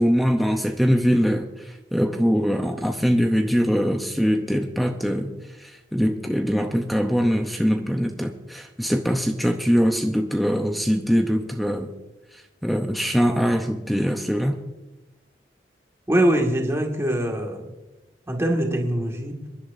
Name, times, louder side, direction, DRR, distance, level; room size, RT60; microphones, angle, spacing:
voice 1, 0.0-1.5 1.9-5.3 5.6-11.9 12.6-14.6, equal, ahead, 4 dB, 0.7 m, -22 dB
voice 2, 16.1-17.7 18.3-19.4, right 1 dB, 15° right, 0 dB, 1.9 m, -23 dB
27.0 x 11.0 x 2.6 m, 1.0 s
head